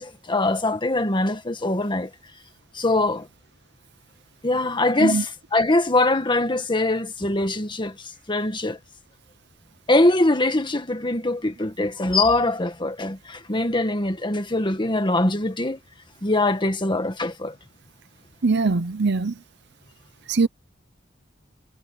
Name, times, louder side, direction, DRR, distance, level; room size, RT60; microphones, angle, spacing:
voice 1, 0.0-2.1 2.7-3.3 4.4-8.8 9.9-15.8 16.2-17.6, left 2 dB, 25° left, 1.9 m, -22 dB
voice 2, 18.4-19.3 20.3-20.5, right 4 dB, 60° right, 0.8 m, -21 dB
head